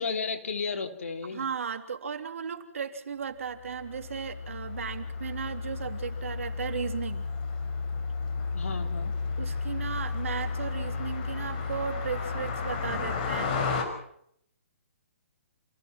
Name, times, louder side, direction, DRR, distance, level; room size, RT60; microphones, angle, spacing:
voice 1, 0.0-1.5 8.5-9.1, left 4 dB, 80° left, 5 dB, 3.6 m, -33 dB
voice 2, 1.3-7.2 9.4-13.6, right 6 dB, 75° right, 7 dB, 3.2 m, -35 dB
Car passing by, 3.7-13.8, left 4 dB, 40° left, 5.5 m, -32 dB
28.5 x 17.0 x 6.0 m, 0.69 s
hypercardioid pair, 145°, 7 cm